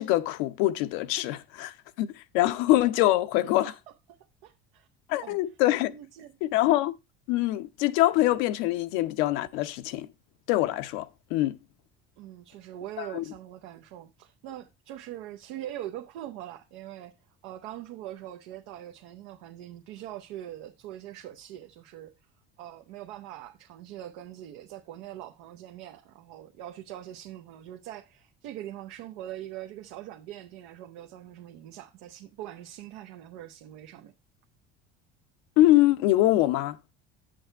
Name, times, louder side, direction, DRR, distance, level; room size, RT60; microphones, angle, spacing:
voice 1, 0.0-3.7 5.1-6.0 6.4-6.9 7.3-10.1 10.5-11.6 13.0-13.2 35.6-36.8, left 16 dB, 80° left, 0.8 m, -24 dB
voice 2, 4.1-4.9 5.2-5.4 5.9-6.3 12.2-17.2 17.4-22.1 22.6-34.1, right 12 dB, 80° right, 0.8 m, -42 dB
8.1 x 6.3 x 4.4 m
supercardioid pair, 85°, 30 cm